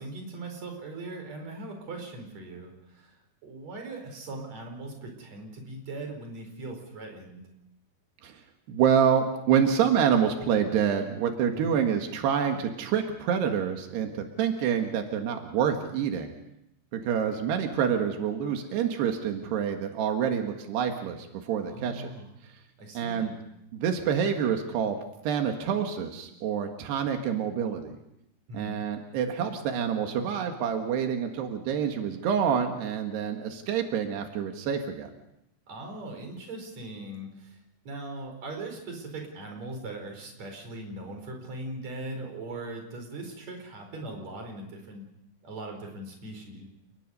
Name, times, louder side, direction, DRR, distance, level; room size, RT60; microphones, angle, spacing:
voice 1, 0.0-3.1 3.4-7.4 11.5-11.8 21.6-22.3 22.8-23.3 28.5-28.8 35.7-37.6 37.9-45.1 45.4-46.7, right 2 dB, 45° right, 3 dB, 5.7 m, -40 dB
voice 2, 8.7-16.3 16.9-22.1 23.0-23.3 23.7-25.0 25.2-28.0 28.5-35.1, right 8 dB, 90° right, 4 dB, 3.8 m, -27 dB
29.5 x 20.5 x 5.4 m, 0.78 s
omnidirectional pair, 4.6 m